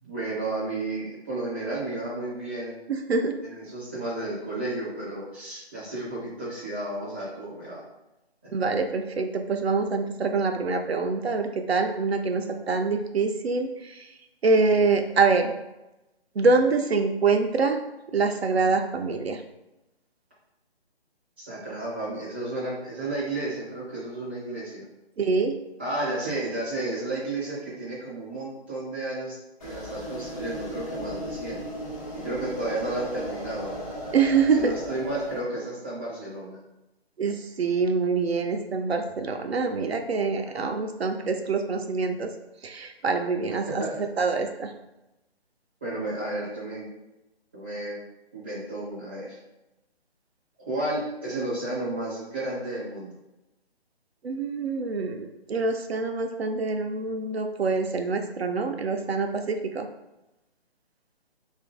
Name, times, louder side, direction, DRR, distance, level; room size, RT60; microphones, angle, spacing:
voice 1, 0.0-2.8 3.4-7.8 8.4-8.5 21.4-24.8 25.8-31.6 32.2-33.8 34.5-36.6 40.5-40.6 43.7-44.0 45.8-46.9 47.5-48.0 48.3-49.4 50.6-53.1, right 2 dB, 10° right, -9 dB, 0.5 m, -32 dB
voice 2, 8.5-13.7 14.4-15.5 16.4-17.8 18.1-19.4 25.2-25.5 34.1-34.7 37.2-42.3 42.6-43.8 44.2-44.7 54.2-59.9, right 4 dB, 75° right, 5 dB, 0.5 m, -25 dB
sound 1, 29.6-35.4, equal, 30° left, 0.8 m, -37 dB
2.7 x 2.5 x 3.6 m, 0.95 s
figure-of-eight pair, 145°, 32 cm